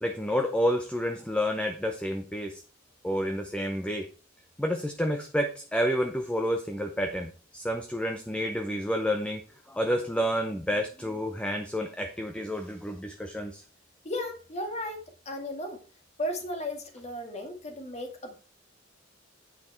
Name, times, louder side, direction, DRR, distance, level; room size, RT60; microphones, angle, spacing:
voice 1, 0.0-2.6 3.0-4.1 4.6-9.4 9.7-13.6, equal, 5° left, 4 dB, 0.8 m, -29 dB
voice 2, 14.0-15.8 16.2-18.4, left 1 dB, 35° left, 4 dB, 2.1 m, -35 dB
8.8 x 6.0 x 4.5 m, 0.37 s
head